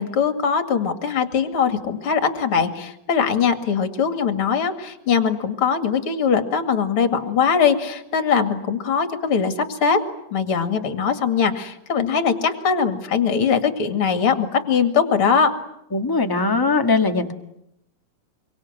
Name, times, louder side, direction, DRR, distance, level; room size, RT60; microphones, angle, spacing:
voice 1, 0.0-10.0 10.3-15.5, left 6 dB, 45° left, 8 dB, 2.8 m, -21 dB
voice 2, 15.9-17.3, left 3 dB, 15° left, 5 dB, 0.7 m, -20 dB
26.5 x 24.0 x 9.4 m, 0.80 s
omnidirectional pair, 3.6 m